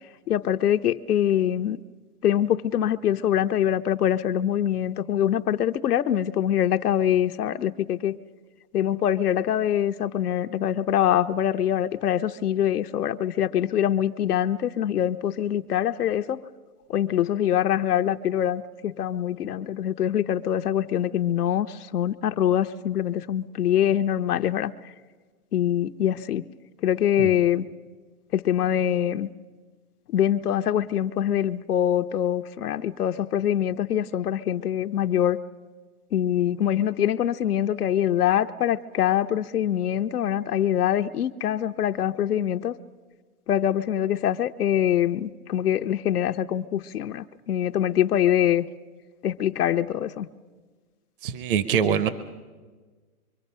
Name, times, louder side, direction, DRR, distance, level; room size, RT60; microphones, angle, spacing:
voice 1, 0.3-1.8 2.2-8.2 8.7-16.4 16.9-24.7 25.5-26.4 26.8-27.7 28.3-29.3 30.1-35.4 36.1-42.8 43.5-48.6 49.2-50.3, left 10 dB, 85° left, 8 dB, 0.9 m, -24 dB
voice 2, 51.2-52.1, right 7 dB, 35° right, 13 dB, 0.7 m, -24 dB
24.5 x 24.0 x 5.6 m, 1.4 s
hypercardioid pair, 160°, 45 cm